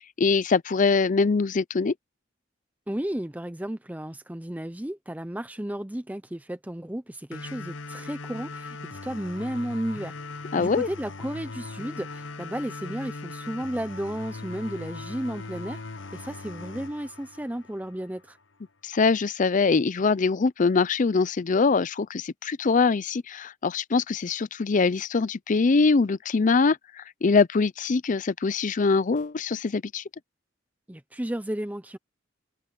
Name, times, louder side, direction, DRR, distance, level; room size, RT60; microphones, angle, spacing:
voice 1, 0.0-1.9 10.5-10.9 18.8-30.0, left 4 dB, 45° left, 0.5 m, -23 dB
voice 2, 2.9-10.2 10.6-15.8 16.1-18.4 30.9-32.0, right 1 dB, 10° right, 0.7 m, -33 dB
sound 1, 7.3-18.3, left 3 dB, 80° left, 0.9 m, -39 dB
head